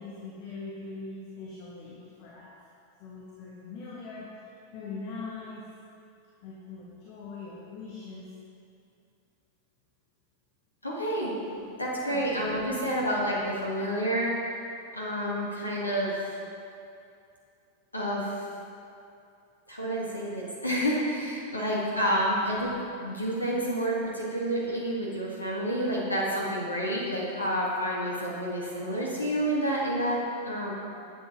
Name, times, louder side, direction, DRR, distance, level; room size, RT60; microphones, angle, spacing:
voice 1, 0.0-2.6 3.0-4.3 4.7-5.7 6.4-8.3 11.5-11.6 12.0-12.5 21.9-22.0, left 4 dB, 45° left, -4 dB, 1.3 m, -42 dB
voice 2, 10.8-11.3 11.8-14.3 14.9-16.3 17.9-18.3 19.7-22.7 23.0-30.7, equal, 85° left, -4 dB, 1.6 m, -29 dB
11.0 x 8.3 x 3.1 m, 2.6 s
figure-of-eight pair, 90°, 0 cm